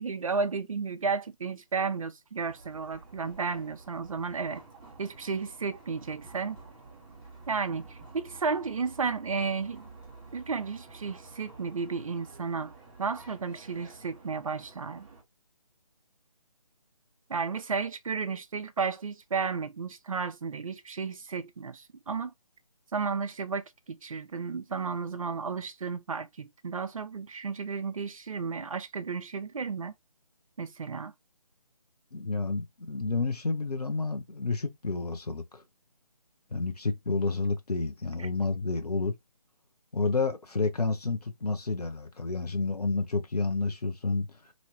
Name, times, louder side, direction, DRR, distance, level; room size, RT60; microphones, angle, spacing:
voice 1, 0.0-4.6 5.0-6.6 7.5-9.9 10.3-12.7 13.0-15.1 17.3-22.3 22.9-23.6 23.9-29.9 30.6-31.1 38.2-38.3, right 5 dB, 60° right, 0.6 m, -33 dB
sound 1, 2.3-15.2, right 3 dB, 15° right, 1.0 m, -50 dB
voice 2, 32.1-35.6 36.5-39.1 39.9-44.3, left 3 dB, 85° left, 0.9 m, -30 dB
3.1 x 2.9 x 2.6 m
figure-of-eight pair, 150°, 20 cm